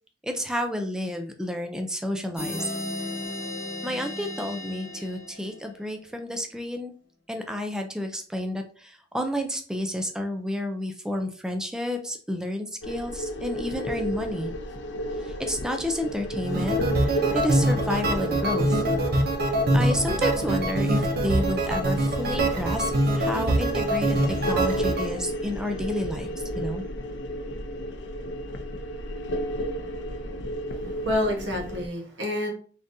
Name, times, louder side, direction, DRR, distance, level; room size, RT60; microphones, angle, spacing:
voice 1, 0.2-2.7 3.8-6.9 7.3-14.5 15.2-18.8 19.7-26.8, left 1 dB, 5° right, 4 dB, 0.4 m, -31 dB
sound 1, 2.4-5.9, left 2 dB, 15° left, 1.2 m, -35 dB
sound 2, 12.8-31.9, equal, 80° left, 0.6 m, -32 dB
sound 3, 16.4-25.1, right 1 dB, 55° right, 0.6 m, -24 dB
voice 2, 30.9-32.5, left 1 dB, 85° right, 1 dB, 1.2 m, -28 dB
3.9 x 3.5 x 2.6 m, 0.42 s
head